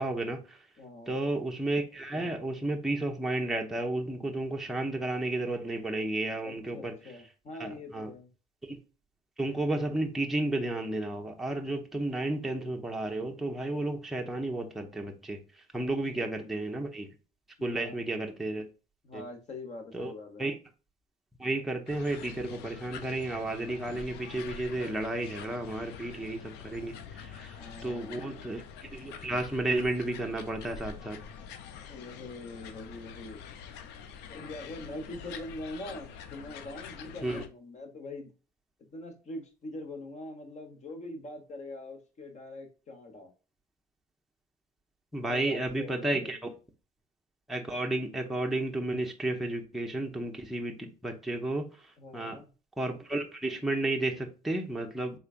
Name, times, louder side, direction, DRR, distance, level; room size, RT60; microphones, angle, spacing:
voice 1, 0.0-0.6 1.1-7.0 7.6-8.1 8.6-8.8 9.4-15.4 15.7-17.1 17.6-18.7 19.1-19.2 19.9-20.1 20.4-20.6 21.4-27.6 27.8-31.2 37.2-37.4 45.1-46.4 47.5-52.4 52.8-55.2, right 2 dB, ahead, 0.6 m, -32 dB
voice 2, 0.8-1.2 6.4-8.3 16.1-16.5 17.6-18.0 19.0-20.5 27.6-28.5 31.9-33.4 34.3-38.3 38.8-43.3 45.1-46.4 52.0-52.5, left 2 dB, 45° left, 1.1 m, -43 dB
sound 1, 21.9-37.5, left 7 dB, 90° left, 0.5 m, -46 dB
3.7 x 3.2 x 2.4 m
cardioid pair, 110°, 17 cm